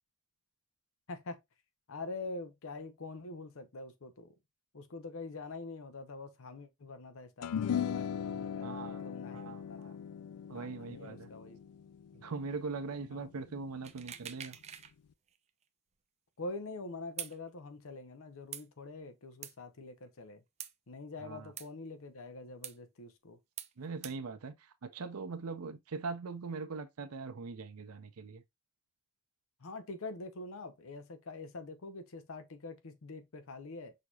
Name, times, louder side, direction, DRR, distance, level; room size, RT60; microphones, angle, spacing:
voice 1, 1.1-1.4 1.9-4.3 4.7-10.0 10.5-11.6 13.1-13.3 16.4-20.4 20.9-23.4 29.6-33.9, left 3 dB, 65° left, 0.8 m, -45 dB
sound 1, 7.4-14.0, left 8 dB, 90° left, 0.4 m, -39 dB
voice 2, 8.6-10.0 10.5-11.3 12.1-14.6 21.2-21.5 23.8-28.4, right 4 dB, 75° right, 0.6 m, -41 dB
sound 2, 13.8-14.9 15.3-15.4 17.2-17.4 18.5-18.6 19.4-19.5 20.6-20.7 21.6-21.7 22.6-22.8 23.6-23.7 24.0-24.2, right 10 dB, 30° right, 0.4 m, -43 dB
6.4 x 2.8 x 2.3 m
head